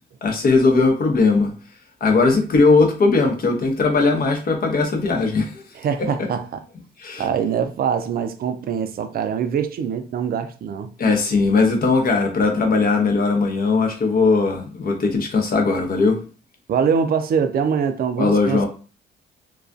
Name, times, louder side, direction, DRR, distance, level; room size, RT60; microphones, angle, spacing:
voice 1, 0.2-1.5 2.0-5.7 7.0-7.3 11.0-16.2 18.2-18.7, left 3 dB, 50° left, 0.8 m, -18 dB
voice 2, 5.8-6.5 7.2-10.9 16.7-18.7, right 7 dB, 50° right, 0.4 m, -23 dB
2.3 x 2.2 x 2.5 m
cardioid pair, 90°, 20 cm